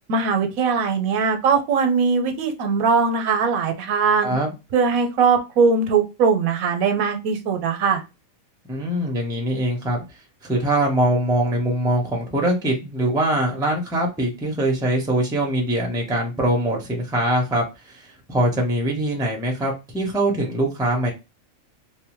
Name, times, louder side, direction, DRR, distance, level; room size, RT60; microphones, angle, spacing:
voice 1, 0.1-4.3 4.7-8.0, right 5 dB, 85° right, 1.0 m, -20 dB
voice 2, 8.7-10.0 10.4-21.1, right 1 dB, 5° right, 0.4 m, -23 dB
2.6 x 2.1 x 2.9 m
omnidirectional pair, 1.5 m